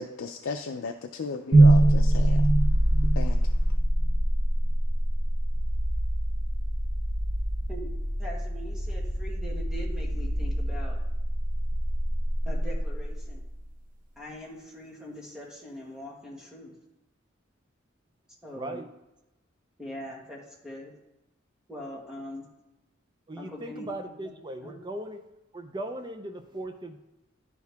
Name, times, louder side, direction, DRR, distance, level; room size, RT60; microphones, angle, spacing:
voice 1, 0.0-2.5 3.1-3.5, left 4 dB, 80° left, 5 dB, 0.4 m, -35 dB
sound 1, 1.5-13.6, right 1 dB, 45° right, 0.8 m, -24 dB
voice 2, 8.2-11.0 12.4-13.4 14.2-16.7 18.4-18.8 19.8-20.9 21.7-22.5 23.4-24.3 24.6-24.7, equal, 5° right, -3 dB, 1.5 m, -42 dB
voice 3, 18.6-18.9 23.3-25.2 25.5-27.0, right 1 dB, 25° right, 6 dB, 0.5 m, -38 dB
11.0 x 4.6 x 3.5 m, 0.95 s
head